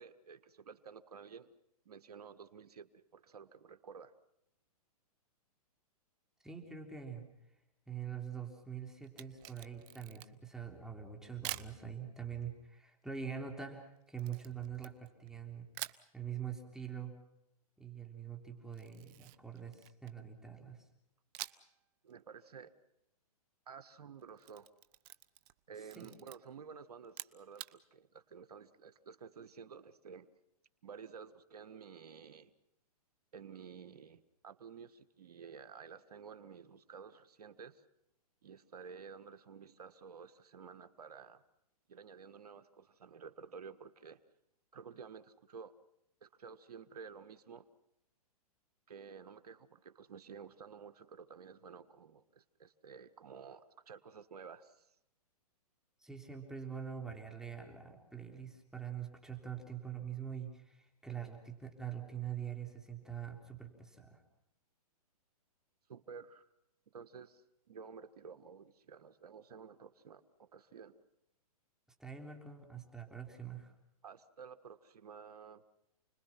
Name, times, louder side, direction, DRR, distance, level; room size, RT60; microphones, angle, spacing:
voice 1, 0.0-1.5 1.9-4.2 22.0-22.7 23.7-24.7 25.7-30.3 30.8-32.5 33.3-37.8 38.4-41.4 41.9-44.2 44.7-45.7 46.2-47.7 48.9-54.9 65.9-66.5 66.9-71.0 74.0-75.6, right 6 dB, 75° right, 11 dB, 1.7 m, -52 dB
voice 2, 6.4-7.3 7.9-15.7 16.1-17.1 17.8-20.9 26.0-26.3 56.0-64.2 72.0-73.7, right 8 dB, 5° right, 2 dB, 3.6 m, -44 dB
Camera, 9.0-10.5 11.4-11.8 14.2-15.4 15.7-16.1 18.7-20.2 21.3-21.8 22.1-22.2 24.2-25.6 25.9-26.4 27.0-27.8, right 16 dB, 35° right, 1.0 m, -46 dB
30.0 x 21.5 x 5.9 m, 0.84 s
hypercardioid pair, 135°, 20 cm